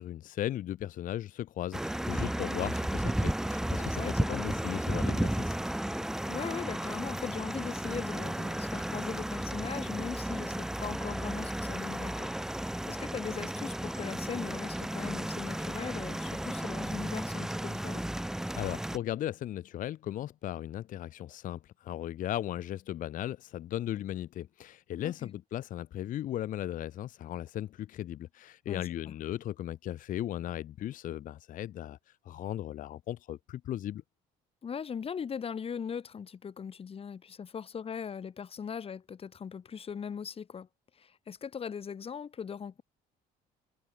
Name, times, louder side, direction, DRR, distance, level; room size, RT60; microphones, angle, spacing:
voice 1, 0.0-5.6 18.6-32.0 32.2-34.0, left 12 dB, 50° left, 0.6 m, -37 dB
sound 1, 1.7-19.0, right 1 dB, 5° right, 0.6 m, -34 dB
voice 2, 3.8-4.6 6.3-12.3 12.9-18.0 25.0-25.3 28.7-29.1 34.6-40.7 41.0-42.8, left 7 dB, 35° left, 1.4 m, -39 dB
cardioid pair, 110°, 17 cm